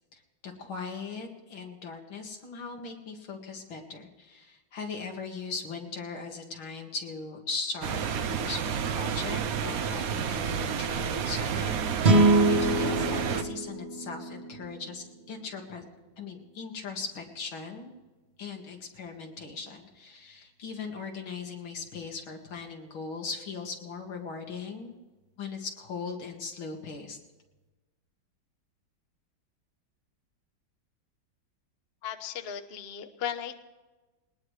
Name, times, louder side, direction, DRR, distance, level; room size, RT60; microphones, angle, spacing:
voice 1, 0.1-11.8 12.5-15.8 16.2-17.9 18.4-24.9 25.4-27.2, left 4 dB, 90° left, 2 dB, 2.7 m, -39 dB
sound 1, 7.8-13.4, right 7 dB, 60° right, 1.0 m, -30 dB
sound 2, 12.0-15.3, right 2 dB, 40° right, 1.2 m, -25 dB
voice 2, 32.0-33.5, left 9 dB, 40° left, 6 dB, 0.9 m, -36 dB
20.5 x 19.5 x 3.3 m, 1.2 s
omnidirectional pair, 2.2 m